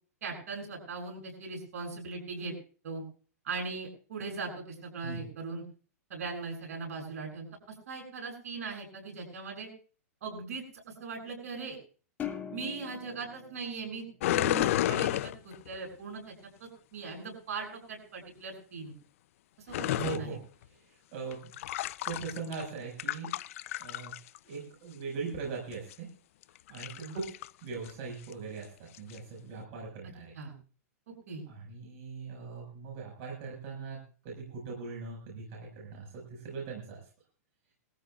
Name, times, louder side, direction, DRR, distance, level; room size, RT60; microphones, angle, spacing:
voice 1, 0.2-2.5 2.8-3.0 3.4-5.6 6.1-7.5 7.9-9.7 10.2-10.6 11.0-11.8 12.5-16.3 16.6-18.9 19.7-20.3 27.0-27.2 30.4-30.5 31.3-31.4, right 4 dB, 65° right, 2 dB, 7.9 m, -39 dB
sound 1, 12.2-14.8, left 9 dB, 20° left, 2.3 m, -42 dB
sound 2, 14.2-15.7 19.7-20.2 21.3-22.7 23.0-24.4 25.7-25.9 26.6-27.5 27.9-28.0 28.2-28.3 28.9-29.2, left 14 dB, 60° left, 0.5 m, -31 dB
voice 2, 19.9-21.5 22.0-23.3 23.8-24.2 24.4-26.1 26.7-27.3 27.6-30.4 31.5-37.1, right 5 dB, 40° right, -2 dB, 5.7 m, -40 dB
22.5 x 14.5 x 2.4 m, 0.38 s
hypercardioid pair, 130°, 8 cm